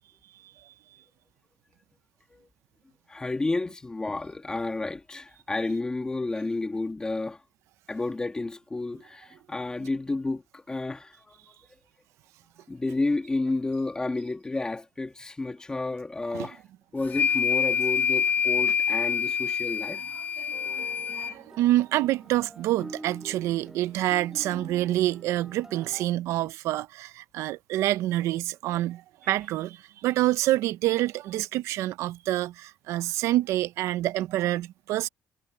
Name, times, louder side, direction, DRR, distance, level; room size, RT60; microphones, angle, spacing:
voice 1, 3.1-7.4 7.9-11.4 12.7-16.6 16.9-20.0, left 2 dB, 15° left, 2.0 m, -31 dB
sound 1, 17.1-21.3, left 7 dB, 40° left, 0.7 m, -26 dB
voice 2, 20.4-20.9 21.1-35.1, right 15 dB, 80° right, 0.7 m, -27 dB
sound 2, 20.5-26.1, right 2 dB, 10° right, 1.5 m, -46 dB
cardioid pair, 125°, 5 cm